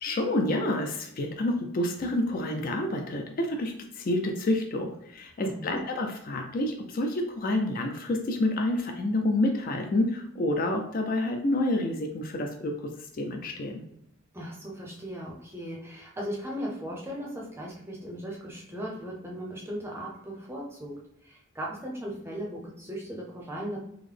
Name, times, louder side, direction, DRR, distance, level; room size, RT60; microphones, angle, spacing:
voice 1, 0.0-12.9 13.2-13.8, left 1 dB, 45° left, 4 dB, 0.4 m, -28 dB
voice 2, 5.4-5.8 14.3-23.8, equal, 10° right, -3 dB, 0.6 m, -37 dB
3.7 x 2.0 x 3.2 m, 0.75 s
head